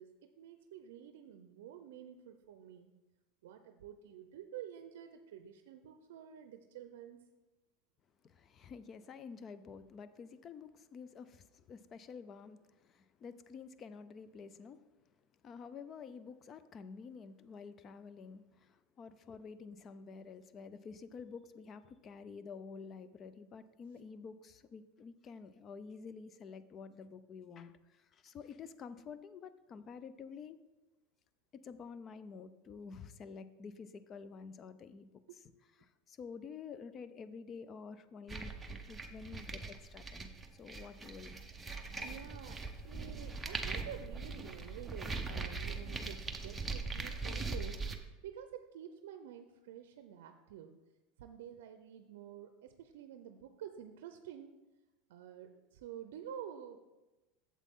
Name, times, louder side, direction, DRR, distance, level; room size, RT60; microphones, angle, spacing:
voice 1, 0.0-3.0 3.4-7.3 35.3-35.4 42.0-47.8 48.2-50.7 51.2-54.6 55.1-56.8, right 9 dB, 80° right, 7 dB, 0.5 m, -49 dB
voice 2, 8.2-14.8 15.4-30.6 31.6-35.1 35.8-38.5 38.9-41.3, left 5 dB, 30° left, 13 dB, 0.4 m, -49 dB
sound 1, 38.3-47.9, right 3 dB, 10° right, 0.6 m, -41 dB
8.3 x 7.3 x 3.6 m, 1.1 s
supercardioid pair, 145°, 0 cm